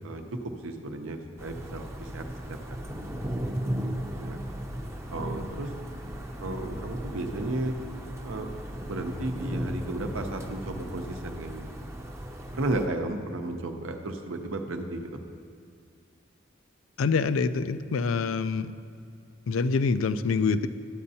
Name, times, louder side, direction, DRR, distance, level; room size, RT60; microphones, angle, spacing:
voice 1, 0.6-2.6 4.2-4.4 5.1-5.7 6.4-7.8 8.2-8.5 8.8-11.7 12.5-15.2, right 2 dB, 85° right, 5 dB, 0.7 m, -33 dB
sound 1, 1.4-12.9, equal, 15° right, 0.6 m, -36 dB
voice 2, 17.0-18.7 19.5-20.7, left 4 dB, 85° left, 12 dB, 0.4 m, -26 dB
13.0 x 8.6 x 2.8 m, 2.2 s
head